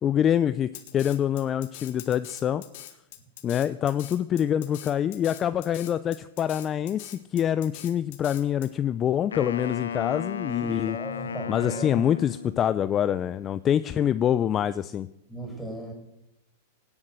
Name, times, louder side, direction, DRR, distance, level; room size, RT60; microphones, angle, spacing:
voice 1, 0.0-0.7 0.9-2.6 3.4-11.0 11.5-15.1, left 10 dB, 30° left, 14 dB, 0.5 m, -25 dB
Drum kit, 0.7-8.7, left 13 dB, 60° left, 1.8 m, -44 dB
Wind instrument woodwind instrument, 9.3-12.8, left 7 dB, 85° left, 0.9 m, -34 dB
voice 2, 10.6-12.1 15.3-15.9, right 2 dB, ahead, 2 dB, 5.7 m, -37 dB
17.5 x 7.2 x 7.7 m, 0.84 s
hypercardioid pair, 110°, 0 cm